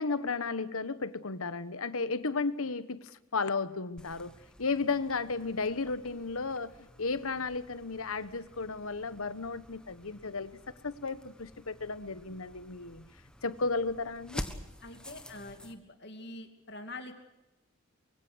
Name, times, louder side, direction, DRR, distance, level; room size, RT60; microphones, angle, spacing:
voice 1, 0.0-13.1 13.4-14.4, left 4 dB, 80° left, 14 dB, 1.2 m, -34 dB
sound 1, 4.0-15.7, equal, 5° left, 1.4 m, -48 dB
voice 2, 14.8-17.1, left 2 dB, 50° left, 6 dB, 2.6 m, -45 dB
24.5 x 23.0 x 6.3 m, 0.99 s
head